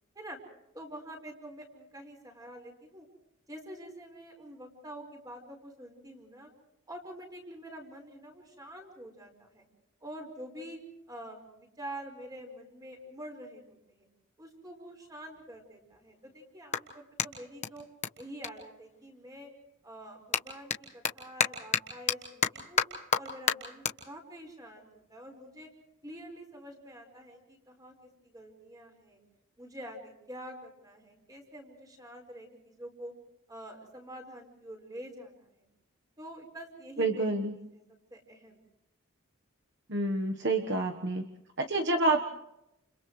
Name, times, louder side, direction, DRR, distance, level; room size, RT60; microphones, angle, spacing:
voice 1, 0.7-3.1 3.5-6.5 6.9-9.6 10.0-10.8 11.1-14.1 14.4-17.8 18.2-19.5 19.8-22.8 23.1-25.7 26.0-27.9 28.3-29.2 29.6-33.1 33.5-35.7 36.2-37.4 37.7-37.8 38.1-38.6, right 1 dB, 15° right, 2 dB, 4.9 m, -46 dB
Clapping, 14.6-14.7 15.3-19.4 19.7-26.3, left 6 dB, 30° left, 1.3 m, -34 dB
voice 2, 37.0-37.5 39.9-41.2 41.6-42.2, right 2 dB, 50° right, 3 dB, 1.3 m, -28 dB
30.0 x 29.0 x 3.2 m, 0.84 s
head